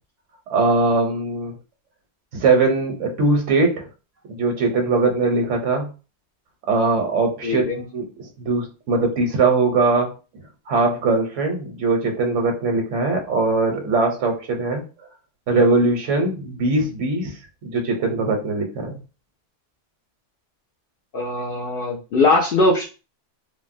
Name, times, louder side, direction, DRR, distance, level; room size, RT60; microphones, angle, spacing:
voice 1, 0.5-1.5 2.3-3.9 4.3-5.9 6.7-7.6 7.9-10.1 10.7-14.8 15.5-17.3 17.6-19.0, right 3 dB, 85° right, 3 dB, 1.1 m, -21 dB
voice 2, 7.4-7.8 21.1-22.8, left 2 dB, 60° left, -2 dB, 0.7 m, -20 dB
3.3 x 2.0 x 2.5 m, 0.33 s
omnidirectional pair, 1.2 m